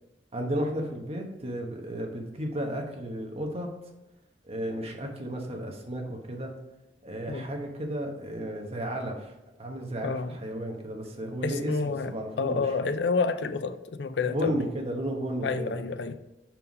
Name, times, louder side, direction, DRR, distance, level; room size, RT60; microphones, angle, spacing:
voice 1, 0.3-3.7 4.4-6.5 7.0-9.3 9.6-12.7 14.3-15.8, right 1 dB, 35° right, 2 dB, 1.1 m, -33 dB
voice 2, 10.0-10.4 11.4-14.6 15.4-16.2, left 4 dB, 70° left, 11 dB, 0.5 m, -29 dB
5.6 x 4.5 x 5.2 m, 0.98 s
head